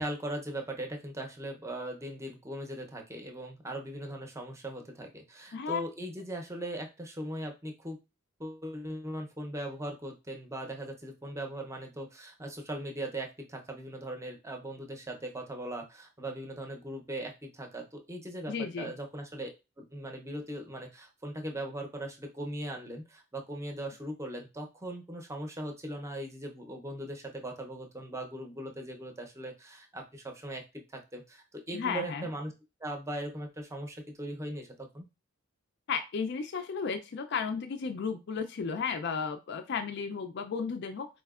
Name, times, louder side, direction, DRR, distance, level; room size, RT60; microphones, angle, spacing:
voice 1, 0.0-8.0 8.4-19.5 19.8-30.6 30.9-32.5 32.8-35.1, right 1 dB, 15° right, 3 dB, 0.6 m, -39 dB
voice 2, 18.5-18.9 31.7-32.3 35.9-41.1, left 5 dB, 55° left, 8 dB, 0.4 m, -34 dB
4.2 x 2.7 x 2.4 m, 0.26 s
head